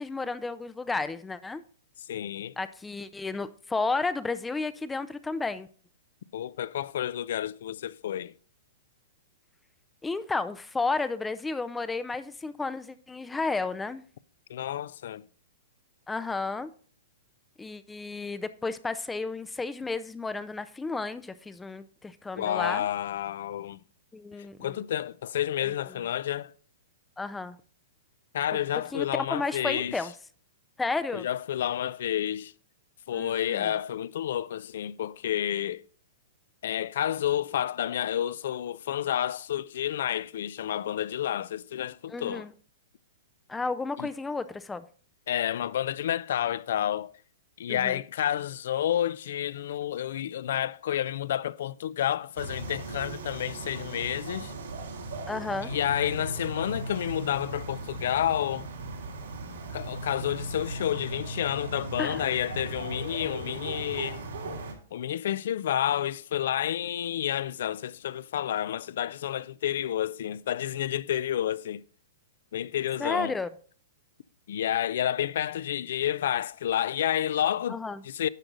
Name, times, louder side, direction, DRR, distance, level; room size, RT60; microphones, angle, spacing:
voice 1, 0.0-1.6 2.6-5.7 10.0-14.0 16.1-16.7 17.6-22.8 24.1-24.8 25.6-25.7 27.2-27.6 28.9-30.1 30.8-31.3 33.1-33.7 42.1-42.5 43.5-44.9 47.7-48.0 55.3-55.7 62.0-62.2 73.0-73.5 77.7-78.0, left 3 dB, 10° left, 0.4 m, -32 dB
voice 2, 2.1-2.5 6.3-8.3 14.5-15.2 22.4-23.8 24.6-26.5 28.3-30.0 31.1-32.5 33.1-35.8 36.6-42.5 44.0-44.1 45.3-47.1 47.6-54.5 55.6-58.7 59.7-64.2 64.9-71.8 72.5-73.3 74.5-77.8 78.0-78.3, left 11 dB, 65° left, 0.4 m, -30 dB
sound 1, 52.4-64.7, right 2 dB, 85° right, 3.1 m, -38 dB
10.5 x 6.5 x 3.8 m
hypercardioid pair, 140°, 0 cm